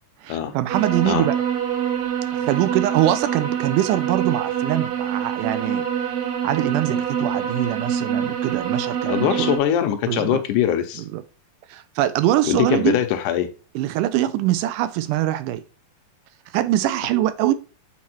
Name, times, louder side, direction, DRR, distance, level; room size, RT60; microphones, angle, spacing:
voice 1, 0.2-1.4 2.3-6.1 6.4-9.5 10.1-10.4 11.0-11.2 11.7-13.0 13.8-15.6 16.5-17.5, right 13 dB, 80° right, 2.0 m, -23 dB
sound 1, 0.7-9.6, right 8 dB, 65° right, 1.6 m, -25 dB
voice 2, 9.1-11.0 12.5-13.5, left 10 dB, 80° left, 2.1 m, -22 dB
8.5 x 4.3 x 2.9 m
omnidirectional pair, 3.8 m